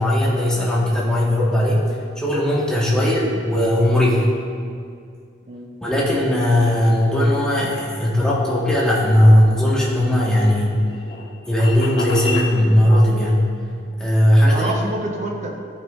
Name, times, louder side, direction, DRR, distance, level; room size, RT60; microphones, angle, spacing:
voice 1, 0.0-1.8 2.2-4.3 5.8-10.8 11.5-13.4 14.0-14.7, left 1 dB, 5° left, -6 dB, 1.5 m, -17 dB
sound 1, 9.8-12.5, left 3 dB, 75° left, 1.5 m, -31 dB
voice 2, 14.4-15.6, right 1 dB, 40° right, 0 dB, 1.0 m, -29 dB
13.5 x 5.8 x 2.5 m, 2.2 s
head